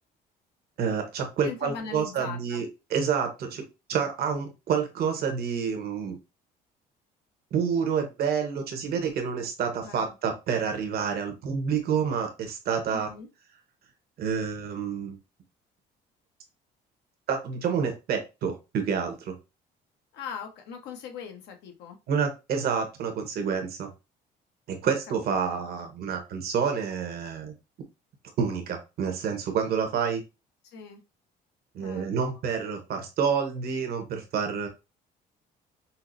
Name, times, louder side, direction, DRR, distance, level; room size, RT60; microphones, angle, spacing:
voice 1, 0.8-3.6 3.9-6.2 7.5-13.1 14.2-15.2 17.3-19.4 22.1-23.9 24.7-27.5 28.4-30.2 31.7-34.7, right 6 dB, 65° right, 5 dB, 1.1 m, -28 dB
voice 2, 1.4-2.6 9.8-10.1 12.9-13.3 20.1-22.0 24.8-24.9 25.5-25.6 30.6-31.0 31.8-32.1, left 6 dB, 80° left, 4 dB, 1.1 m, -40 dB
5.6 x 2.1 x 2.6 m, 0.26 s
cardioid pair, 110°, 17 cm